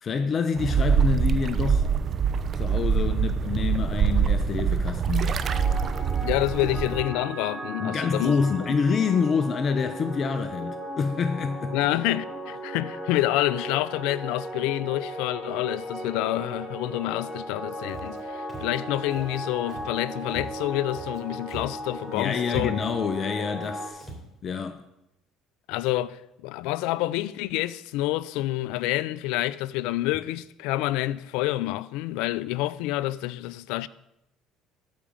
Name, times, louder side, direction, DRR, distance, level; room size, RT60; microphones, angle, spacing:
voice 1, 0.0-1.9 2.5-5.5 7.8-11.8 22.1-24.1 24.4-24.8, left 5 dB, 45° left, 0.7 m, -27 dB
sound 1, 0.6-7.0, right 6 dB, 45° right, 0.7 m, -24 dB
sound 2, 5.4-23.9, right 1 dB, 15° right, 3.7 m, -36 dB
voice 2, 6.2-8.3 11.7-22.8 25.7-33.9, left 16 dB, 80° left, 0.4 m, -28 dB
Walk footsteps, 17.9-18.2 18.5-18.8 19.1-19.4 19.7-20.0 20.3-21.2 21.5-21.8 22.1-22.2 22.5-23.0 23.5-23.7 24.0-24.3, right 2 dB, 5° left, 3.5 m, -40 dB
12.5 x 5.2 x 8.7 m
supercardioid pair, 85°, 0 cm